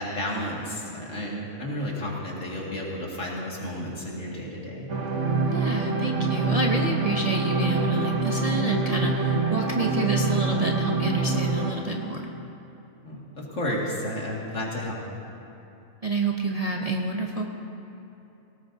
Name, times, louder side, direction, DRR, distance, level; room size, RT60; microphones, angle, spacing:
voice 1, 0.0-4.9 13.0-15.0, left 1 dB, 65° left, -4 dB, 2.6 m, -32 dB
sound 1, 4.9-11.7, right 3 dB, 60° right, 1.6 m, -25 dB
voice 2, 5.5-12.3 16.0-17.5, right 2 dB, 35° right, 0 dB, 0.7 m, -28 dB
19.0 x 17.5 x 2.7 m, 2.9 s
omnidirectional pair, 1.4 m